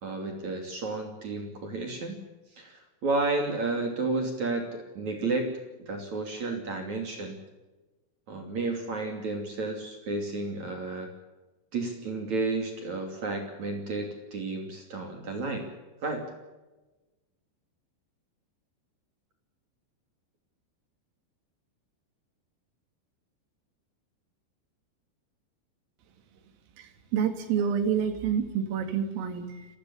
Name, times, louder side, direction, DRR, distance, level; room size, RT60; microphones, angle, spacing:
voice 1, 0.0-2.2 2.5-5.5 5.8-7.4 8.3-11.1 11.7-15.7 16.0-16.2, right 3 dB, 40° right, 4 dB, 3.6 m, -32 dB
voice 2, 26.8-29.7, right 7 dB, 85° right, 8 dB, 4.9 m, -28 dB
29.5 x 15.0 x 7.1 m, 1.1 s
omnidirectional pair, 5.8 m